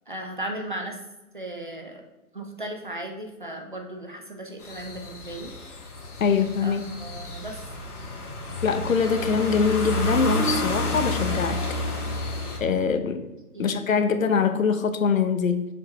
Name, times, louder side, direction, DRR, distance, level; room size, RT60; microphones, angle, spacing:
voice 1, 0.1-1.0 1.3-2.0 2.3-5.5 6.6-7.6 13.5-13.9, right 1 dB, 35° right, 3 dB, 0.5 m, -36 dB
sound 1, 4.6-12.6, equal, 85° left, 1.9 m, -30 dB
voice 2, 6.2-6.9 8.6-11.6 12.6-13.2 13.6-15.7, left 6 dB, 65° left, 9 dB, 0.8 m, -23 dB
6.6 x 4.6 x 3.1 m, 1.1 s
hypercardioid pair, 175°, 44 cm